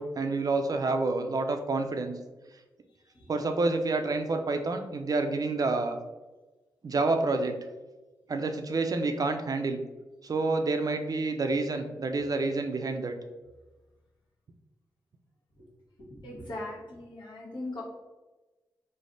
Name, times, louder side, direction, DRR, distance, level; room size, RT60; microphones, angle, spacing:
voice 1, 0.0-2.1 3.3-6.0 6.8-7.5 8.3-9.8 10.2-13.1, right 3 dB, 50° right, 6 dB, 0.4 m, -28 dB
voice 2, 16.2-17.8, left 2 dB, 75° left, -5 dB, 1.2 m, -39 dB
3.2 x 2.0 x 3.8 m, 1.1 s
cardioid pair, 45°, 8 cm